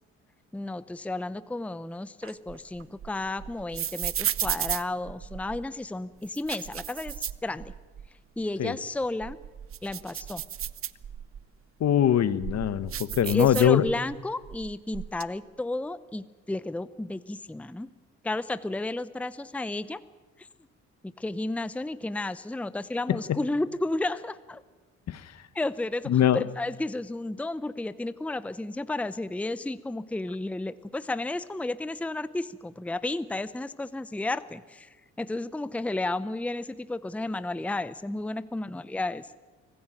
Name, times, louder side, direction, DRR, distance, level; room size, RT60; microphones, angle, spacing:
voice 1, 0.5-7.7 8.4-9.4 9.8-10.4 13.2-17.9 18.2-20.0 20.4-20.5 21.2-24.6 25.5-39.4, left 2 dB, 5° left, 15 dB, 0.7 m, -32 dB
sound 1, 2.2-5.7 6.2-8.1 8.4-8.5 9.0-11.4 12.0-14.2 14.4-15.2, right 9 dB, 45° right, 0.7 m, -34 dB
voice 2, 11.8-13.8 23.1-23.4 25.1-25.3 26.1-26.4, left 10 dB, 60° left, 15 dB, 1.1 m, -23 dB
25.0 x 15.5 x 9.1 m, 1.2 s
cardioid pair, 90°, 30 cm